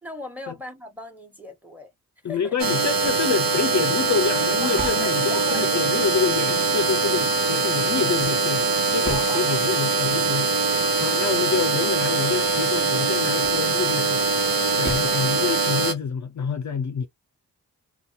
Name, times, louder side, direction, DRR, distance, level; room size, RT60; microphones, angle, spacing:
voice 1, 0.0-1.9 2.3-2.5 4.6-6.0 9.0-9.6, right 1 dB, 5° right, 1.2 m, -37 dB
voice 2, 2.2-14.2 14.7-17.1, left 6 dB, 50° left, 0.5 m, -27 dB
sound 1, 2.6-15.9, right 3 dB, 65° right, 0.7 m, -22 dB
sound 2, 3.0-5.2 8.1-9.4 13.3-13.9 14.4-15.2, right 2 dB, 30° right, 1.1 m, -38 dB
2.6 x 2.3 x 2.5 m
cardioid pair, 40°, 38 cm